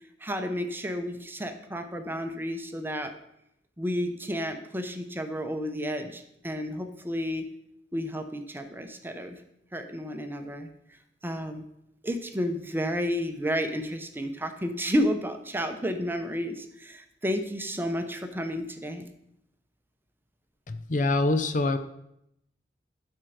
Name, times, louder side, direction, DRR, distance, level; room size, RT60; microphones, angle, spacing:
voice 1, 0.2-3.1 3.8-7.5 7.9-9.4 9.7-10.7 11.2-11.6 12.0-19.1, equal, 10° right, 7 dB, 0.7 m, -31 dB
voice 2, 20.7-21.8, left 2 dB, 45° left, 10 dB, 0.6 m, -25 dB
12.0 x 4.5 x 5.0 m, 0.78 s
head